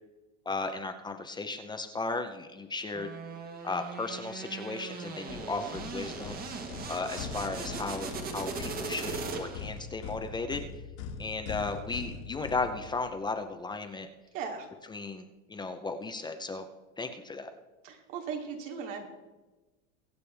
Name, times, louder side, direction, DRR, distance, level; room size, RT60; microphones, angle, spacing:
voice 1, 0.5-3.1 3.6-6.4 6.9-10.6 11.2-14.1 14.9-16.7 17.0-17.5, left 3 dB, 10° left, 7 dB, 0.6 m, -35 dB
sound 1, 2.9-9.8, right 4 dB, 25° right, 1.3 m, -39 dB
sound 2, 5.3-13.3, left 5 dB, 80° left, 2.3 m, -42 dB
voice 2, 14.3-14.7 17.8-19.1, right 6 dB, 80° right, 2 dB, 2.9 m, -37 dB
22.5 x 8.2 x 3.4 m, 1.1 s
supercardioid pair, 155°, 37 cm